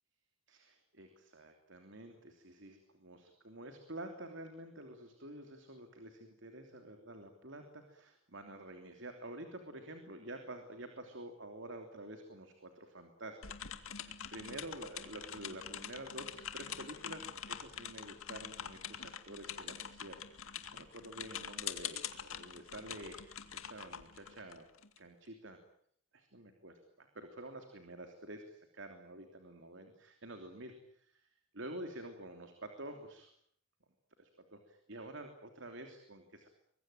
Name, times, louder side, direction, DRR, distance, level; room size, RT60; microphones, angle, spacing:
voice 1, 0.5-20.2 20.7-24.7 25.0-25.6 26.1-33.3 34.2-36.5, right 1 dB, 60° right, 6 dB, 3.2 m, -49 dB
sound 1, 13.4-25.0, left 9 dB, 75° left, 2.2 m, -45 dB
24.5 x 22.0 x 9.2 m, 0.66 s
head